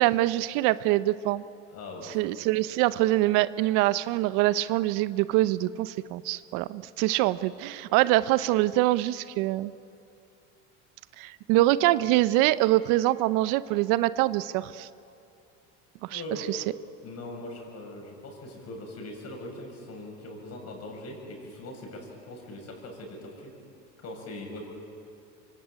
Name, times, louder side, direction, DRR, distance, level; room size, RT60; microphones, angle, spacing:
voice 1, 0.0-1.4 2.1-9.7 11.2-14.9 16.0-16.2 16.5-16.6, right 16 dB, 65° right, 16 dB, 0.8 m, -24 dB
voice 2, 1.7-2.6 7.1-7.2 16.1-16.5 17.0-23.5 24.0-24.6, left 1 dB, 45° left, 2 dB, 7.6 m, -41 dB
25.5 x 24.0 x 8.8 m, 2.7 s
supercardioid pair, 100°, 34 cm